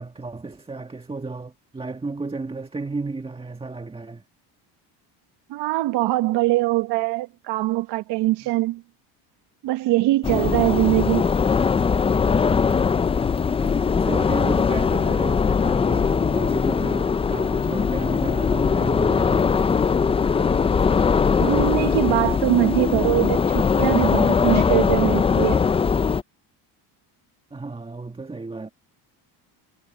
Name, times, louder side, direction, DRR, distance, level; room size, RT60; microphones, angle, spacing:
voice 1, 0.0-4.2 8.4-8.5 13.6-19.5 27.5-28.7, right 3 dB, 10° right, 1.6 m, -33 dB
voice 2, 5.5-8.8 9.6-11.3 21.4-25.6, right 17 dB, 65° right, 1.0 m, -22 dB
sound 1, 10.2-26.2, left 5 dB, 15° left, 0.3 m, -20 dB
cardioid pair, 125°, 45 cm